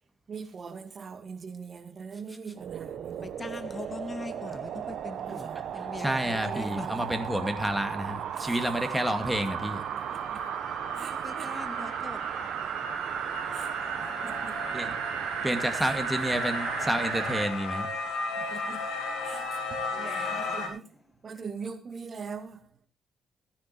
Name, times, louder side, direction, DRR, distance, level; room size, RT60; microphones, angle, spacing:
voice 1, 0.3-3.3 5.2-5.6 6.0-7.0 8.3-8.6 9.9-10.4 10.9-11.6 13.5-15.1 15.7-16.0 18.4-18.8 19.2-22.7, right 5 dB, 45° right, 2.2 m, -42 dB
sound 1, 2.6-17.5 18.0-18.1, right 9 dB, 70° right, 1.0 m, -35 dB
voice 2, 3.2-7.1 8.7-8.8 10.9-12.5 19.9-20.8, left 3 dB, 25° left, 0.7 m, -42 dB
voice 3, 6.0-9.8 14.7-14.9 15.4-17.9, right 1 dB, 5° right, 2.3 m, -29 dB
sound 2, 6.6-20.7, left 3 dB, 80° left, 4.6 m, -37 dB
15.0 x 9.9 x 4.4 m
cardioid pair, 90°, 0 cm